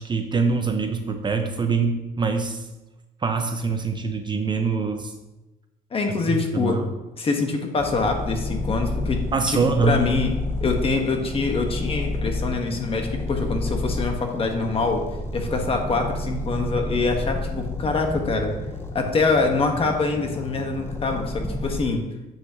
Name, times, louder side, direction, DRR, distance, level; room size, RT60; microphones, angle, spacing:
voice 1, 0.0-2.6 3.2-5.1 6.3-6.9 9.3-10.0, right 4 dB, 25° right, 6 dB, 0.7 m, -24 dB
voice 2, 5.9-6.8 7.2-10.3 10.6-15.0 15.3-18.5 18.9-22.0, left 3 dB, 35° left, 3 dB, 1.2 m, -25 dB
sound 1, 7.8-21.8, left 2 dB, 15° left, 0.8 m, -30 dB
9.3 x 5.9 x 2.9 m, 1.0 s
cardioid pair, 110°, 17 cm